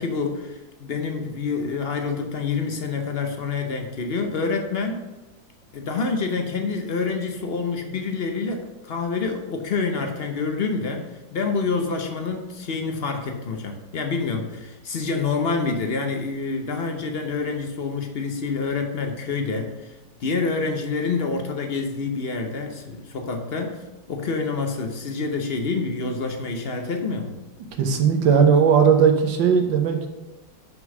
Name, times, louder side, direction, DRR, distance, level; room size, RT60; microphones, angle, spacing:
voice 1, 0.0-5.0 5.7-19.9 20.2-27.4, left 4 dB, 60° left, 4 dB, 0.6 m, -27 dB
voice 2, 27.8-30.1, right 6 dB, 85° right, 5 dB, 1.7 m, -17 dB
6.1 x 5.4 x 6.0 m, 1.0 s
omnidirectional pair, 2.0 m